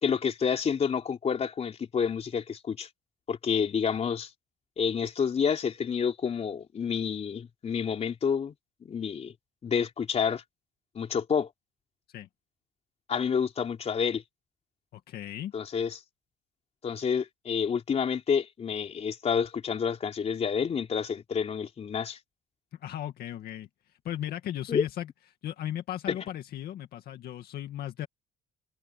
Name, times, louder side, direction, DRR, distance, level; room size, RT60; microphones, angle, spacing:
voice 1, 0.0-2.9 3.3-4.3 4.8-8.5 8.8-9.3 9.6-10.4 10.9-11.5 13.1-14.2 15.5-16.0 16.8-22.2 24.7-24.8, left 6 dB, 40° left, 3.4 m, -29 dB
voice 2, 14.9-15.5 22.7-25.1 25.4-28.1, left 12 dB, 65° left, 2.1 m, -36 dB
cardioid pair, 110°, 17 cm